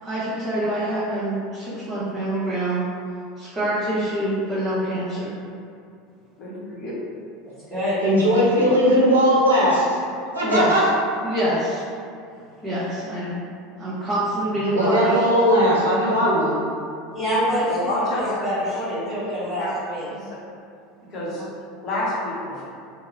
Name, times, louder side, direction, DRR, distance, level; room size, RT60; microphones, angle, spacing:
voice 1, 0.0-2.9 3.4-5.3 10.4-10.9 11.2-11.8 12.6-13.4 13.8-15.2 17.4-17.6, right 1 dB, 20° right, -11 dB, 0.7 m, -25 dB
voice 2, 6.4-6.9 17.7-18.4 18.7-19.3 19.6-19.7 20.1-20.4 21.1-21.5 21.8-22.7, left 1 dB, 45° left, -5 dB, 0.7 m, -29 dB
voice 3, 8.0-10.0 10.3-10.9 14.7-16.6, equal, 85° right, -6 dB, 0.6 m, -18 dB
voice 4, 17.1-20.0 21.4-21.5, equal, 15° left, -16 dB, 1.3 m, -26 dB
2.3 x 2.0 x 3.0 m, 2.4 s
figure-of-eight pair, 75°, 0 cm